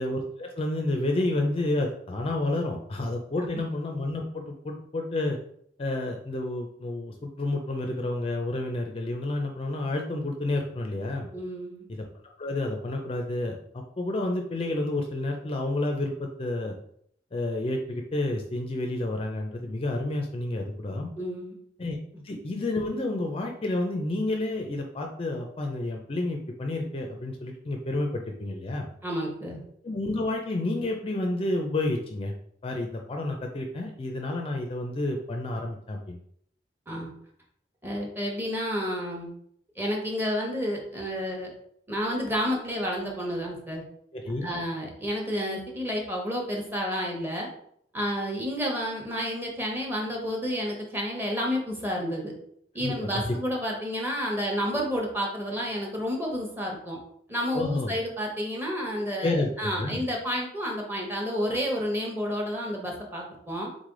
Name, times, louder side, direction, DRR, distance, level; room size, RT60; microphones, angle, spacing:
voice 1, 0.0-5.4 5.8-11.3 11.9-12.1 12.4-16.8 17.3-21.1 21.8-22.0 22.2-28.9 29.8-32.3 32.6-36.2 44.1-44.5 52.8-53.3 57.5-57.9 59.2-60.0, left 2 dB, 35° left, 3 dB, 0.4 m, -30 dB
voice 2, 11.3-11.8 21.2-21.5 29.0-29.6 36.9-37.1 37.8-39.3 39.7-41.5 41.9-43.8 44.4-47.5 47.9-52.3 52.7-57.0 57.3-63.7, equal, 10° right, -1 dB, 1.0 m, -30 dB
3.9 x 3.3 x 3.7 m, 0.67 s
head